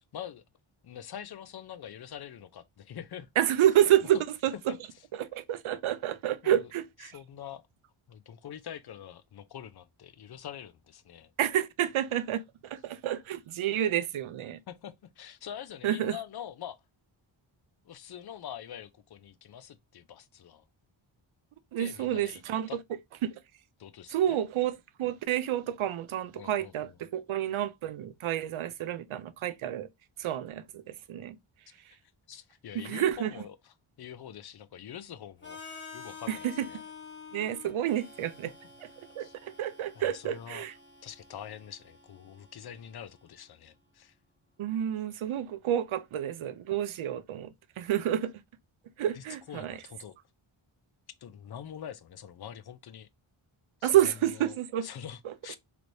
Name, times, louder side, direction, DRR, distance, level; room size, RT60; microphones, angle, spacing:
voice 1, 0.1-0.4 0.8-3.3 4.0-4.1 4.7-4.8 6.4-6.7 7.0-7.6 8.1-11.3 14.7-16.8 17.8-20.6 21.8-22.4 22.7-22.8 23.8-24.4 26.4-27.0 31.7-35.6 35.9-36.8 38.4-38.5 39.2-39.3 39.9-40.6 41.0-44.2 49.1-50.2 51.2-53.1 53.8-55.6, left 9 dB, 50° left, 0.5 m, -45 dB
voice 2, 3.4-4.5 5.2-7.1 11.4-14.6 15.8-16.2 21.7-22.7 23.2-23.4 24.1-29.9 30.2-31.4 32.7-33.3 36.3-36.7 37.3-38.5 39.0-40.7 44.6-48.3 49.0-49.8 53.8-54.9 55.3-55.4, right 11 dB, 75° right, 0.5 m, -29 dB
Harmonica, 35.4-43.3, left 5 dB, 20° left, 1.0 m, -49 dB
3.1 x 3.0 x 2.6 m
wide cardioid pair, 115°, 50 cm